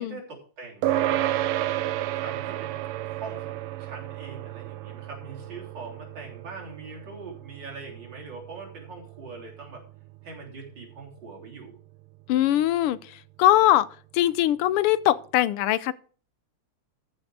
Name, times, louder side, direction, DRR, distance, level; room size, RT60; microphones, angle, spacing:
voice 1, 0.0-1.4 2.1-2.8 3.1-9.8 10.2-11.8, right 4 dB, 55° right, 4.0 m, -42 dB
sound 1, 0.8-10.5, right 14 dB, 90° right, 1.6 m, -32 dB
voice 2, 12.3-13.0 13.4-13.9 14.1-15.9, left 13 dB, 85° left, 1.6 m, -21 dB
14.0 x 6.2 x 4.8 m
omnidirectional pair, 2.4 m